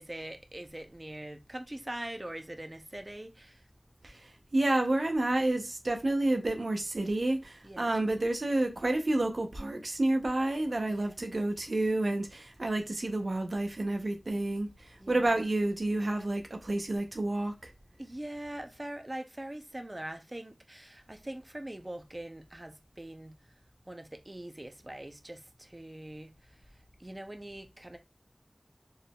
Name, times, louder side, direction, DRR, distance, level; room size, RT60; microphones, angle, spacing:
voice 1, 0.0-3.6 7.6-7.9 10.9-11.1 15.0-15.5 18.0-23.3 23.9-26.6 27.0-28.0, right 1 dB, 35° right, 0.6 m, -43 dB
voice 2, 4.0-17.7, right 2 dB, 85° right, 0.8 m, -30 dB
4.4 x 3.5 x 2.3 m
wide cardioid pair, 45°, 0 cm